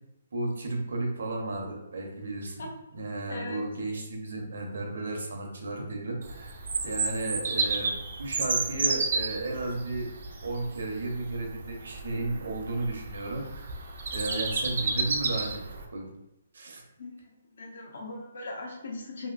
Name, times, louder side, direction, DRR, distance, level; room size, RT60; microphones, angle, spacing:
voice 1, 0.3-2.6 2.9-6.5 6.8-7.9 8.2-10.1 10.4-13.7 14.1-16.1 16.5-16.8, right 2 dB, 70° right, 1 dB, 0.8 m, -33 dB
voice 2, 3.3-3.6 17.0-19.3, left 2 dB, 55° left, 0 dB, 0.6 m, -39 dB
Bird vocalization bird call bird song, 6.2-15.9, right 4 dB, 45° right, 0.4 m, -32 dB
2.9 x 2.8 x 2.4 m, 0.91 s
hypercardioid pair, 175°, 0 cm